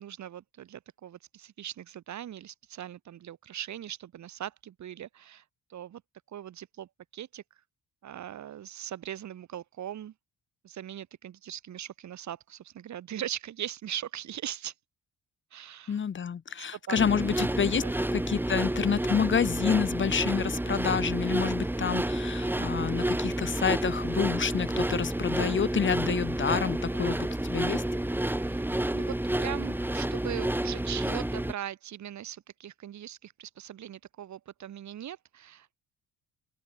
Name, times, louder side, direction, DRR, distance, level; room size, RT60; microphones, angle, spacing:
voice 1, 0.0-5.4 5.7-6.0 6.3-7.4 8.0-10.1 10.6-14.7 15.5-16.0 16.7-17.0 17.3-17.5 17.8-17.9 25.4-25.6 28.4-35.9, right 11 dB, 65° right, 4.0 m, -40 dB
voice 2, 15.9-17.8 18.1-27.8, left 7 dB, 40° left, 1.3 m, -28 dB
sound 1, 17.0-31.5, right 1 dB, 5° right, 2.4 m, -30 dB
open air
cardioid pair, 90°, 30 cm